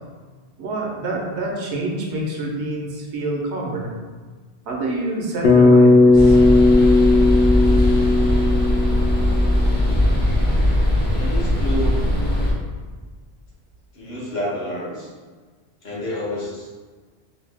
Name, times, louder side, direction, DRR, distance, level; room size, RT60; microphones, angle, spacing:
voice 1, 0.6-3.9 4.7-6.4, right 2 dB, 75° right, -2 dB, 1.0 m, -27 dB
Bass guitar, 5.4-9.8, left 3 dB, 85° left, 0.9 m, -15 dB
sound 1, 6.1-12.5, left 1 dB, 10° left, 0.5 m, -19 dB
voice 2, 11.1-12.0 13.9-15.1 15.8-16.7, left 1 dB, 50° left, -6 dB, 0.7 m, -29 dB
2.8 x 2.6 x 3.3 m, 1.4 s
omnidirectional pair, 1.2 m